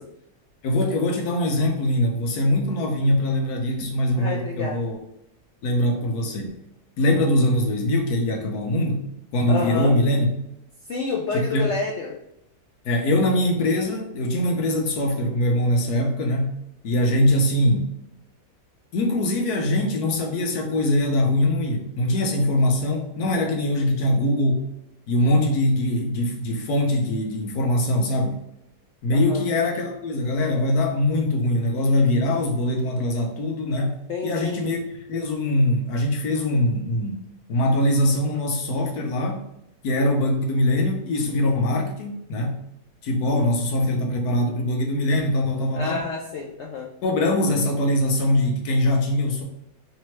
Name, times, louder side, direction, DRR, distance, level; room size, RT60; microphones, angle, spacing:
voice 1, 0.6-5.0 5.6-6.6 7.0-9.0 9.3-10.3 11.3-11.7 12.8-16.6 16.8-17.9 18.9-24.7 25.1-28.4 29.0-34.8 35.1-37.2 37.5-39.4 39.8-42.6 43.0-46.1 47.0-49.4, left 1 dB, 70° left, 2 dB, 1.2 m, -22 dB
voice 2, 4.2-4.8 9.5-9.9 10.9-12.2 29.1-29.4 34.1-34.6 45.7-46.9, left 4 dB, 85° left, -1 dB, 0.6 m, -29 dB
3.3 x 2.9 x 3.0 m, 0.80 s
omnidirectional pair, 1.8 m